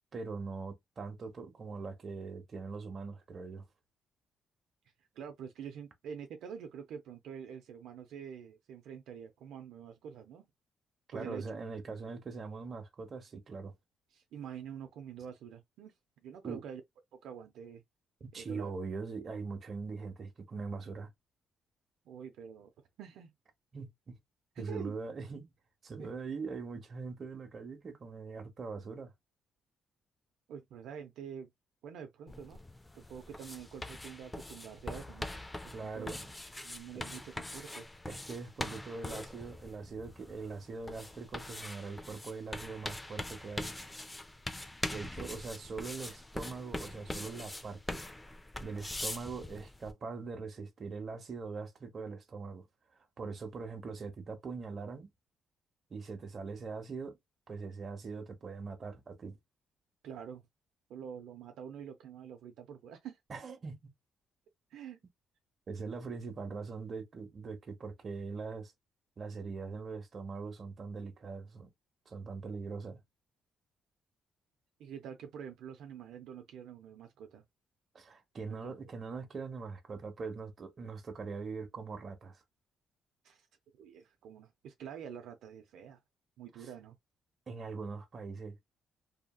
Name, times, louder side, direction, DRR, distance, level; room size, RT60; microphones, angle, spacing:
voice 1, 0.1-3.7 11.1-13.7 16.4-16.6 18.2-21.1 23.7-24.2 24.6-25.5 25.8-29.1 35.7-36.3 38.1-43.7 44.9-48.0 48.6-52.6 53.2-55.1 55.9-57.2 57.5-59.4 63.3-63.9 65.7-68.7 69.2-71.7 72.1-73.0 77.9-82.4 86.6-86.7 87.5-88.6, right 4 dB, 45° right, 0.9 m, -42 dB
voice 2, 5.0-10.5 11.1-11.4 14.1-15.9 16.2-16.8 17.1-17.8 18.4-18.7 22.1-22.7 23.0-23.3 24.6-25.0 26.0-26.1 30.5-31.5 31.8-32.6 32.9-35.3 35.6-36.1 36.6-37.9 45.2-45.3 60.0-60.4 60.9-63.2 64.7-65.0 74.8-77.4 78.4-78.9 83.2-83.5 83.8-86.0 86.4-87.0, right 8 dB, 80° right, 0.5 m, -46 dB
sound 1, 32.3-49.9, left 1 dB, 15° left, 0.4 m, -43 dB
2.8 x 2.7 x 2.3 m
cardioid pair, 90°, 0 cm